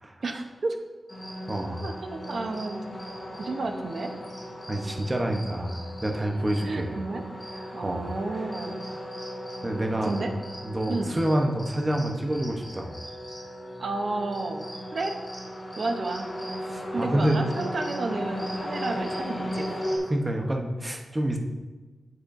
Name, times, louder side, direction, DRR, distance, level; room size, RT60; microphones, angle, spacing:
voice 1, 0.2-0.8 1.8-2.8 3.4-4.1 6.6-7.2 7.7-8.8 10.0-10.3 10.9-11.2 13.8-15.1 15.8-16.3 16.9-19.8, right 3 dB, 55° right, 5 dB, 0.8 m, -31 dB
sound 1, 1.1-20.0, equal, 25° left, 2.3 m, -36 dB
voice 2, 1.5-1.9 4.7-7.0 7.8-8.1 9.6-10.2 10.6-13.0 16.6-17.4 20.1-21.4, right 1 dB, 20° right, 2 dB, 0.8 m, -27 dB
8.7 x 7.9 x 2.6 m, 1.3 s
wide cardioid pair, 160°, 0 cm